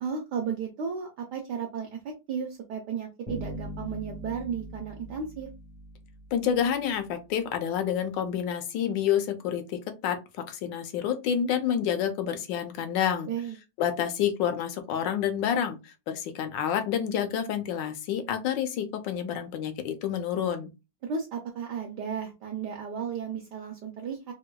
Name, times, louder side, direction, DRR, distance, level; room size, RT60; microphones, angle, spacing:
voice 1, 0.0-5.5 13.3-13.5 21.0-24.3, right 6 dB, 70° right, 1 dB, 1.1 m, -34 dB
sound 1, 3.3-6.7, equal, 35° right, 0.5 m, -41 dB
voice 2, 6.3-10.2 10.5-13.3 13.8-20.7, left 9 dB, 75° left, 8 dB, 1.2 m, -28 dB
4.4 x 2.2 x 2.3 m, 0.26 s
omnidirectional pair, 2.2 m